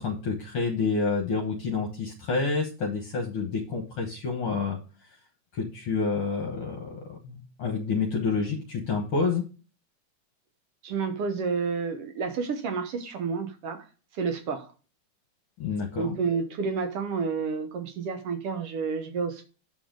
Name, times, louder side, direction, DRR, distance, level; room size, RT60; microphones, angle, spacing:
voice 1, 0.0-4.8 5.5-9.4 15.6-16.2, left 4 dB, 60° left, 2 dB, 1.8 m, -28 dB
voice 2, 10.8-13.8 14.1-14.7 16.0-19.5, right 5 dB, 65° right, 7 dB, 1.7 m, -30 dB
8.8 x 6.9 x 3.8 m, 0.36 s
omnidirectional pair, 3.3 m